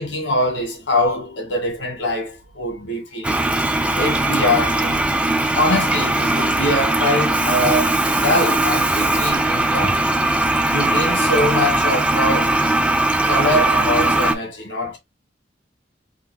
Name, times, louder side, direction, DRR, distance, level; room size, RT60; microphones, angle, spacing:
voice 1, 0.0-3.4 4.0-5.0 5.5-10.2 10.7-12.5 13.3-15.0, left 1 dB, 90° left, 1.8 m, -23 dB
Toilet flush, 3.2-14.3, right 2 dB, 5° right, 0.4 m, -19 dB
3.7 x 2.5 x 3.3 m
head